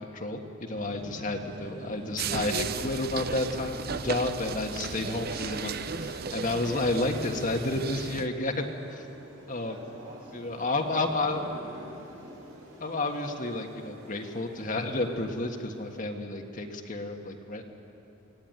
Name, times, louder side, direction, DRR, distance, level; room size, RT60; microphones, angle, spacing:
voice 1, 0.0-9.0 9.5-9.8 10.3-11.4 12.8-17.7, left 2 dB, 40° left, 3 dB, 1.6 m, -31 dB
sound 1, 0.7-16.0, equal, 80° right, 6.3 m, -50 dB
voice 2, 1.5-1.8 9.6-12.3, right 1 dB, 65° right, -1 dB, 5.6 m, -47 dB
sound 2, 2.2-8.3, right 5 dB, 50° right, 0.7 m, -35 dB
24.0 x 17.0 x 9.4 m, 2.9 s
head